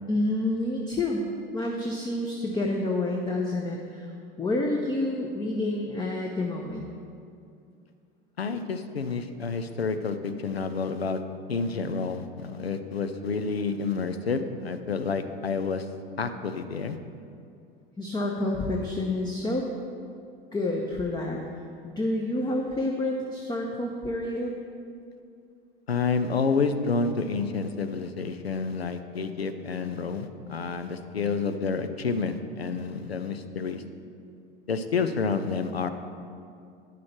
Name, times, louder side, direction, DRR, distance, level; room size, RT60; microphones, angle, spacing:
voice 1, 0.1-4.1 4.4-6.9 18.0-19.7 20.5-21.4 21.8-24.5, left 2 dB, 15° left, 0 dB, 0.8 m, -28 dB
voice 2, 8.4-11.2 11.5-15.9 16.2-17.0 25.9-33.8 34.7-35.9, left 4 dB, 90° left, 9 dB, 0.6 m, -29 dB
10.0 x 6.3 x 4.4 m, 2.4 s
figure-of-eight pair, 75°, 30 cm